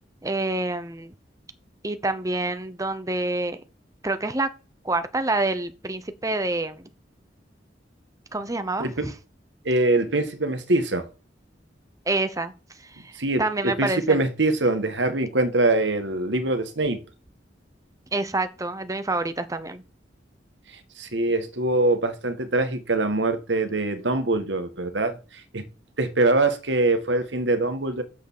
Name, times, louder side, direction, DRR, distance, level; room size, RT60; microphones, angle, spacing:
voice 1, 0.2-1.1 1.8-3.6 4.0-4.5 4.8-6.9 8.3-9.1 12.1-12.5 12.8-13.1 13.4-14.2 18.1-19.8, right 2 dB, 20° right, 0.9 m, -27 dB
voice 2, 9.6-11.1 13.1-17.0 20.7-25.6 26.0-28.0, right 2 dB, 85° right, 1.7 m, -23 dB
7.4 x 6.5 x 7.3 m
head